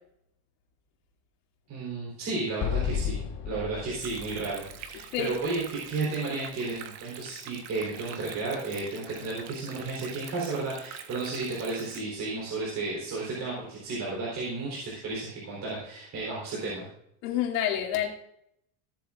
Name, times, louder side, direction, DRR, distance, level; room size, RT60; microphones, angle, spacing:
voice 1, 1.7-3.2 3.4-16.9, right 3 dB, 35° right, -5 dB, 3.9 m, -33 dB
Explosion, 2.6-5.9, left 8 dB, 35° left, 1.3 m, -33 dB
Stream, 4.0-12.0, right 9 dB, 85° right, 1.3 m, -45 dB
voice 2, 17.2-18.1, left 10 dB, 85° left, 0 dB, 2.7 m, -28 dB
16.5 x 7.8 x 2.5 m, 0.74 s
cardioid pair, 160°, 47 cm